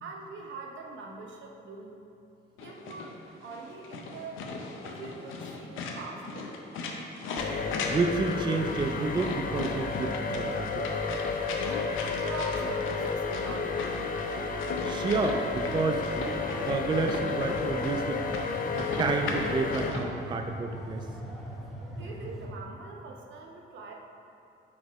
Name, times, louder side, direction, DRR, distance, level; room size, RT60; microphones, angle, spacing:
voice 1, 0.0-2.0 2.6-3.1 3.4-4.4 4.8-6.5 11.8-13.9 21.9-23.9, right 3 dB, 70° right, 0 dB, 0.8 m, -42 dB
sound 1, 2.6-20.0, left 3 dB, 85° left, 0.6 m, -38 dB
sound 2, 7.4-19.9, left 4 dB, 45° left, 0.5 m, -32 dB
voice 2, 7.9-10.9 14.8-16.1 16.5-18.2 18.7-21.1, right 4 dB, 25° right, 4 dB, 0.3 m, -30 dB
sound 3, 15.4-22.5, equal, ahead, 1.2 m, -41 dB
4.9 x 4.2 x 4.6 m, 2.7 s
cardioid pair, 90°, 20 cm